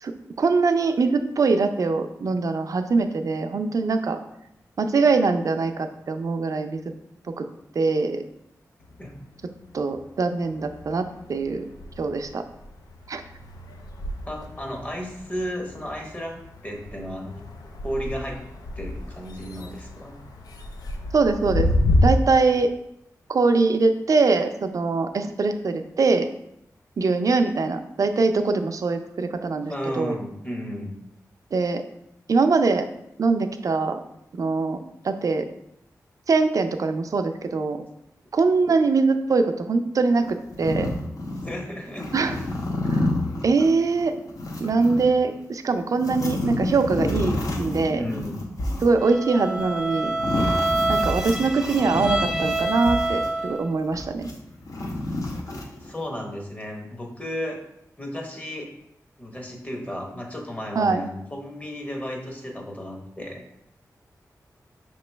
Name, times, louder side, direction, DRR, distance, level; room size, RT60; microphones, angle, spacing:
voice 1, 0.0-4.2 4.8-6.8 7.4-7.5 7.8-8.2 9.7-11.6 12.0-12.4 13.1-13.2 21.1-21.7 22.0-22.7 23.3-26.3 27.0-30.2 31.5-31.8 32.3-32.9 33.2-34.0 34.3-34.8 35.0-35.5 36.3-37.8 38.3-40.9 42.1-42.4 42.9-43.1 43.4-44.2 44.6-48.0 48.8-50.2 50.9-54.3 60.7-61.0, right 4 dB, 60° right, 8 dB, 0.4 m, -22 dB
sound 1, 8.8-10.1 10.4-22.1, left 1 dB, 80° left, 0.5 m, -30 dB
voice 2, 14.2-17.4 17.8-18.4 18.8-20.1 29.7-30.9 41.4-42.1 47.9-48.4 55.8-57.6 58.0-58.7 59.2-63.4, equal, 25° left, 1 dB, 1.0 m, -33 dB
sound 2, 40.2-41.5 41.9-45.1 45.8-53.4 53.9-55.9, left 1 dB, 60° left, 0.8 m, -29 dB
Bowed string instrument, 49.0-53.7, right 2 dB, 10° right, 0.5 m, -27 dB
5.2 x 3.0 x 3.3 m, 0.79 s
cardioid pair, 60°, 6 cm